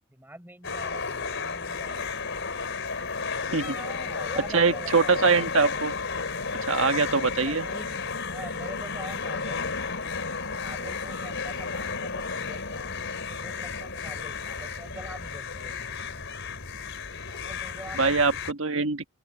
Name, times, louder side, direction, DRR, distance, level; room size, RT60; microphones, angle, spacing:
voice 1, 0.1-2.1 3.5-5.6 6.6-9.7 10.4-12.9 13.3-16.0 17.2-18.2, right 1 dB, 10° right, 6.3 m, -45 dB
sound 1, 0.6-18.5, left 4 dB, 55° left, 4.6 m, -33 dB
voice 2, 4.5-6.0 6.7-7.7 18.0-19.0, right 4 dB, 60° right, 1.5 m, -23 dB
open air
head